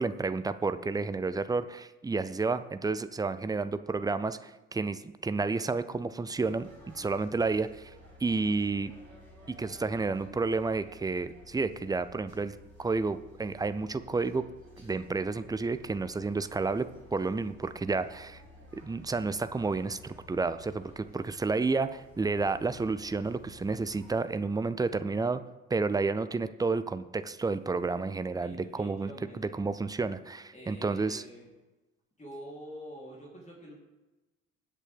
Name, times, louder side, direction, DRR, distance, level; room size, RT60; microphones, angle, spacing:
voice 1, 0.0-7.9 8.2-8.9 9.6-14.4 14.8-18.4 18.7-25.4 25.7-31.2, right 4 dB, 10° right, 12 dB, 0.6 m, -31 dB
sound 1, 6.3-24.2, left 1 dB, 90° right, 1.8 m, -54 dB
voice 2, 28.4-29.6 30.5-31.5 32.2-33.7, equal, 15° left, -4 dB, 3.5 m, -46 dB
20.0 x 8.3 x 3.5 m, 1.1 s
figure-of-eight pair, 50°, 40 cm